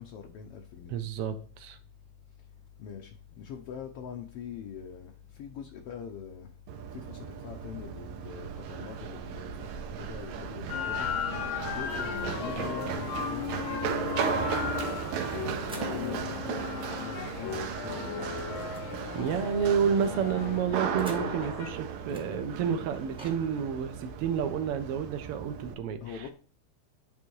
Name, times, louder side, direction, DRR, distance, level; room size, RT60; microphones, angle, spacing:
voice 1, 0.0-0.9 2.8-3.1 3.4-6.5 6.9-11.1 11.7-14.8 15.7-18.4 19.9-20.2 26.0-26.3, left 7 dB, 70° left, 3 dB, 1.5 m, -43 dB
voice 2, 0.9-1.8 19.1-26.2, right 7 dB, 70° right, 8 dB, 1.5 m, -30 dB
Run, 6.7-25.7, right 8 dB, 85° right, 2.2 m, -36 dB
sound 1, 10.7-21.7, left 8 dB, 90° left, 2.4 m, -36 dB
sound 2, 13.3-16.4 16.7-16.8 17.1-17.2 17.4-21.6 22.1-23.4, right 1 dB, 5° right, 0.6 m, -52 dB
9.9 x 3.6 x 4.6 m, 0.41 s
omnidirectional pair, 3.3 m